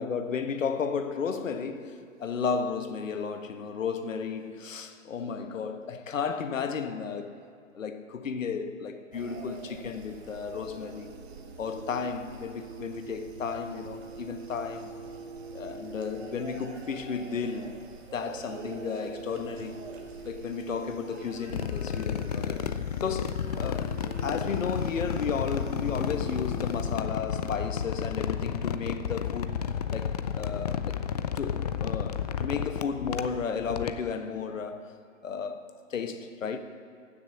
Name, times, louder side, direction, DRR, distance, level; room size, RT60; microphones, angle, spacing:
voice 1, 0.0-7.4 7.7-11.2 11.6-14.9 15.5-17.8 18.1-19.9 20.2-22.7 23.0-23.9 24.2-31.0 31.3-34.9 35.2-35.6 35.9-36.6, left 6 dB, 75° left, 1.3 m, -33 dB
sound 1, 9.1-27.0, right 4 dB, 50° right, 1.7 m, -44 dB
sound 2, 21.5-34.1, left 8 dB, 30° left, 0.4 m, -32 dB
15.5 x 6.6 x 7.2 m
hypercardioid pair, 135°, 40 cm